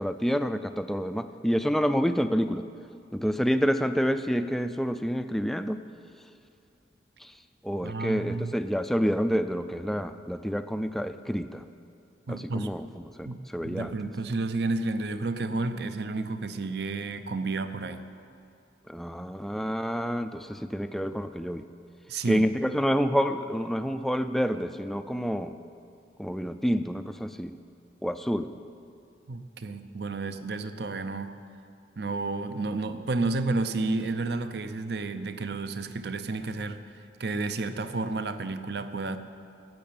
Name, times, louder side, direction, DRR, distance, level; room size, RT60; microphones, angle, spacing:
voice 1, 0.0-2.6 3.1-5.8 7.2-7.3 7.6-11.6 12.3-13.9 18.9-21.6 22.3-25.6 26.2-27.6 28.0-28.5, equal, ahead, 10 dB, 0.3 m, -28 dB
voice 2, 7.8-8.5 12.3-12.7 13.3-13.4 13.6-18.0 22.1-22.5 29.3-31.3 32.0-36.8 37.2-39.2, right 3 dB, 55° right, 10 dB, 0.6 m, -31 dB
12.0 x 7.6 x 8.7 m, 2.6 s
head